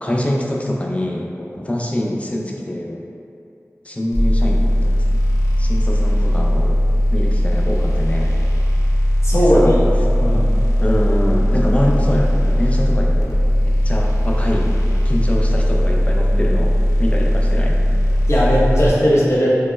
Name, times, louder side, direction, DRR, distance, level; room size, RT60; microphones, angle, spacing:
voice 1, 0.0-3.0 3.8-5.2 5.6-6.8 7.1-8.3 9.3-9.8 10.8-14.7 15.0-17.8, left 1 dB, 25° left, -1 dB, 0.5 m, -24 dB
sound 1, 4.1-18.9, equal, 90° left, 0.5 m, -17 dB
voice 2, 9.2-9.7 10.2-10.5 18.3-19.5, equal, 55° left, -8 dB, 0.9 m, -16 dB
4.9 x 2.1 x 2.2 m, 2.5 s
wide cardioid pair, 40°, 6 cm